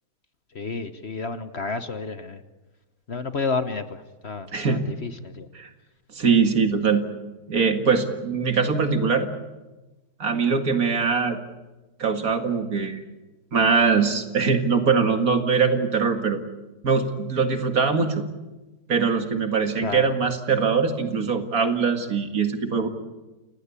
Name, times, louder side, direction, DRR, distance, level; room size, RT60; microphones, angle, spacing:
voice 1, 0.5-2.4 3.1-5.5 19.8-20.1, left 4 dB, 45° left, 10 dB, 1.2 m, -31 dB
voice 2, 4.5-4.8 5.5-5.7 6.1-7.1 7.5-9.3 10.2-11.4 12.0-13.0 13.5-16.4 16.8-18.2 18.9-22.9, right 5 dB, 60° right, 6 dB, 2.4 m, -22 dB
29.0 x 18.0 x 8.4 m, 1.1 s
omnidirectional pair, 1.7 m